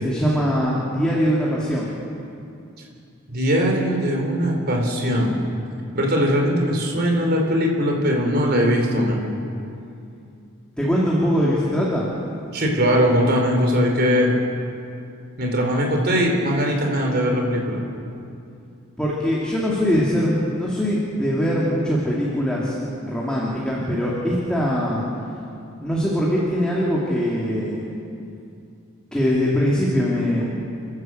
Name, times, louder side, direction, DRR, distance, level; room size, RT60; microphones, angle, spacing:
voice 1, 0.0-1.9 10.8-12.1 19.0-25.0 25.8-27.9 29.1-30.5, equal, 5° left, -6 dB, 2.8 m, -22 dB
voice 2, 3.3-5.4 5.9-9.3 12.5-14.3 15.4-17.8, equal, 50° right, 1 dB, 4.1 m, -20 dB
30.0 x 12.5 x 7.8 m, 2.6 s
head